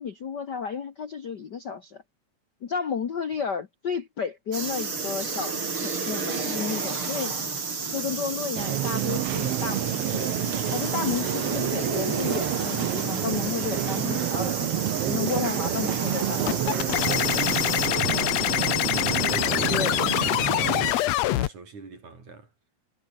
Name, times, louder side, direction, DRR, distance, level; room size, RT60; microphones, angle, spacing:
voice 1, 0.0-2.0 2.6-7.5 7.9-10.3 10.7-17.5 19.7-20.0, left 6 dB, 50° left, 1.3 m, -32 dB
sound 1, 4.5-17.9, right 4 dB, 40° right, 4.9 m, -31 dB
sound 2, 8.5-20.9, right 14 dB, 85° right, 1.3 m, -29 dB
sound 3, 16.5-21.5, left 15 dB, 70° left, 1.7 m, -25 dB
voice 2, 17.9-22.5, right 4 dB, 60° right, 7.2 m, -42 dB
omnidirectional pair, 3.7 m